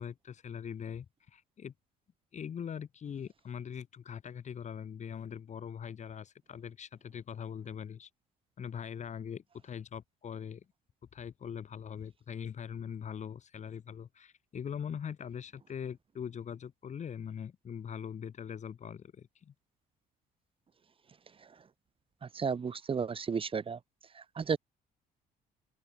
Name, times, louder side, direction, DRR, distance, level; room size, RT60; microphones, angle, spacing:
voice 1, 0.0-1.7 2.3-8.1 8.6-10.6 11.1-19.5, left 8 dB, 45° left, 4.8 m, -42 dB
voice 2, 22.2-23.8 24.1-24.6, right 6 dB, 30° right, 2.5 m, -34 dB
open air
cardioid pair, 110°, 17 cm